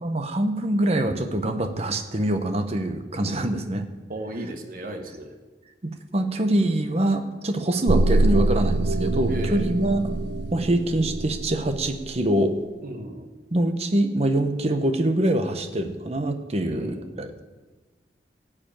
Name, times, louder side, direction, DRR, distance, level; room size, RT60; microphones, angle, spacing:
voice 1, 0.0-3.8 5.8-10.0 10.5-12.6 13.5-17.4, right 1 dB, 35° right, 7 dB, 0.9 m, -24 dB
voice 2, 4.1-5.4 9.3-9.7 12.8-13.3 16.7-17.2, right 1 dB, 50° right, 5 dB, 1.2 m, -35 dB
sound 1, 7.9-12.1, right 2 dB, 70° right, 0.5 m, -24 dB
14.5 x 4.9 x 8.9 m, 1.3 s
head